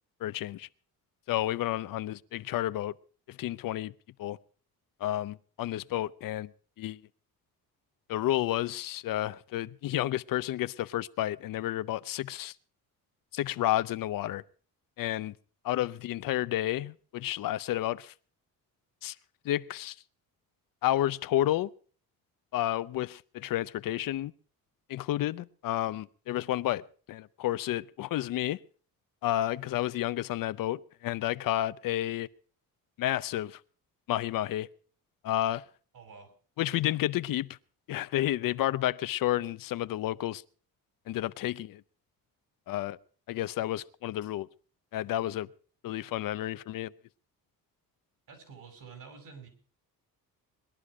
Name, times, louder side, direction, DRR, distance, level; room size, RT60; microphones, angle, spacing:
voice 1, 0.2-0.7 1.3-2.9 3.3-3.9 4.2-4.4 5.0-6.5 6.8-7.0 8.1-12.5 13.3-14.4 15.0-15.3 15.6-18.1 19.0-19.1 19.4-20.0 20.8-21.7 22.5-24.3 24.9-28.6 29.2-32.3 33.0-33.6 34.1-34.7 35.2-35.6 36.6-37.5 37.9-40.4 41.1-41.8 42.7-43.0 43.3-44.5 44.9-45.5 45.8-46.9, left 14 dB, 70° left, 0.7 m, -31 dB
voice 2, 35.9-36.3 48.3-49.5, right 5 dB, 60° right, 6.3 m, -49 dB
21.0 x 11.5 x 4.9 m
cardioid pair, 135°, 35 cm